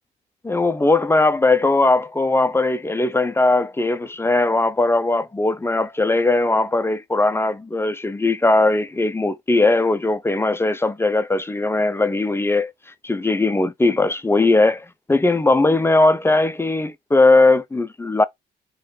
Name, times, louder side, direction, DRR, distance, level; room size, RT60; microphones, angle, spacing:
voice 1, 0.4-12.7 13.0-18.2, left 2 dB, 10° left, 0.6 m, -19 dB
3.9 x 3.1 x 3.8 m
cardioid pair, 90°, 20 cm